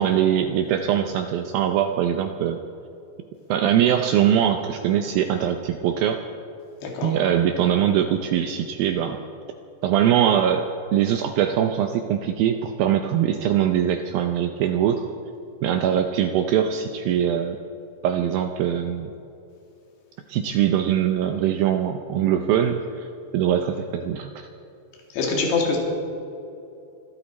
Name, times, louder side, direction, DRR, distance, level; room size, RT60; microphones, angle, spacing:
voice 1, 0.0-2.6 3.5-6.2 7.0-9.2 9.8-15.1 15.6-17.6 18.0-19.1 20.3-24.5, right 9 dB, 85° right, 6 dB, 2.0 m, -22 dB
voice 2, 6.8-7.1 25.1-25.8, left 4 dB, 80° left, -1 dB, 4.6 m, -24 dB
26.0 x 13.0 x 4.2 m, 2.7 s
omnidirectional pair, 5.0 m